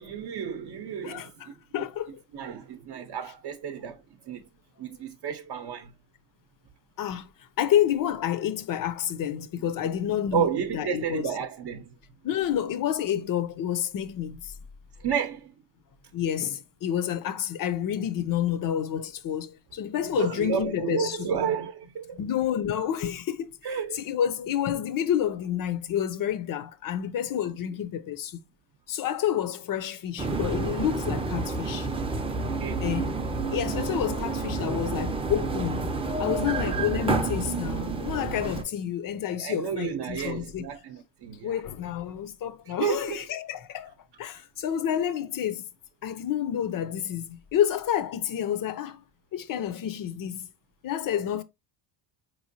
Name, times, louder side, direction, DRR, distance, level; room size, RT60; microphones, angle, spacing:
voice 1, 0.0-1.5 2.3-4.4 4.8-5.9 10.3-11.9 15.0-15.5 20.1-22.2 23.6-24.0 32.4-32.8 39.4-41.6 42.8-43.2, right 8 dB, 55° right, 0.7 m, -31 dB
voice 2, 1.0-2.2 7.0-7.3 7.6-11.3 12.2-14.5 16.1-21.3 22.2-28.4 28.9-31.9 32.8-33.2 33.5-35.9 36.2-40.7 41.4-45.7 46.0-49.0 49.3-50.5 50.8-51.4, left 10 dB, 45° left, 0.6 m, -29 dB
sound 1, 30.2-38.6, right 3 dB, 10° right, 0.5 m, -29 dB
4.3 x 3.1 x 2.6 m
cardioid pair, 95°, 49 cm